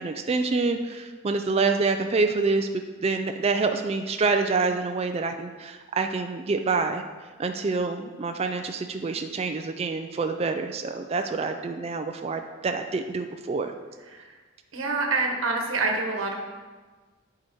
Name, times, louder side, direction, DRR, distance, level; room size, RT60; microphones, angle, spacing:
voice 1, 0.0-2.7 3.0-7.0 7.4-13.7, right 4 dB, 30° right, 6 dB, 0.3 m, -27 dB
voice 2, 14.7-16.4, right 3 dB, 65° right, 1 dB, 1.1 m, -26 dB
8.8 x 4.9 x 4.4 m, 1.4 s
head